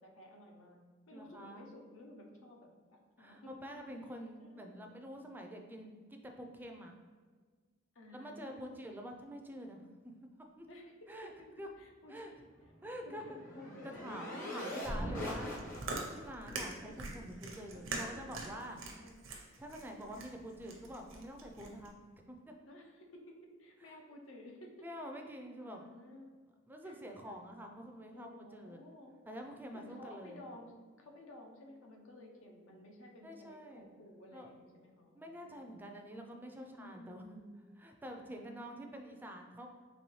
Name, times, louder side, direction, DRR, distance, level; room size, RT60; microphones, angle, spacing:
voice 1, 0.0-3.5 4.4-4.8 7.9-8.7 10.7-11.3 11.8-12.4 13.0-14.8 15.1-15.2 16.6-16.9 17.7-18.1 18.4-19.2 22.7-24.9 25.3-26.3 26.8-27.1 28.1-29.1 29.7-35.7 36.6-37.6 38.1-38.8, left 1 dB, 80° left, 1 dB, 0.7 m, -54 dB
voice 2, 1.1-1.7 3.2-6.9 8.1-10.1 10.6-10.7 11.1-11.3 11.6-11.7 12.1-12.3 12.8-13.2 13.8-15.6 16.1-18.8 19.6-22.5 24.8-25.8 26.7-28.8 29.3-30.4 33.2-33.8 34.3-34.5 35.1-37.4 37.8-39.7, equal, 10° right, 3 dB, 0.3 m, -47 dB
sound 1, 12.6-16.2, equal, 45° left, 1.0 m, -42 dB
Chewing mastication, 15.4-21.9, right 3 dB, 80° right, 0.6 m, -44 dB
4.1 x 3.0 x 3.1 m, 1.5 s
head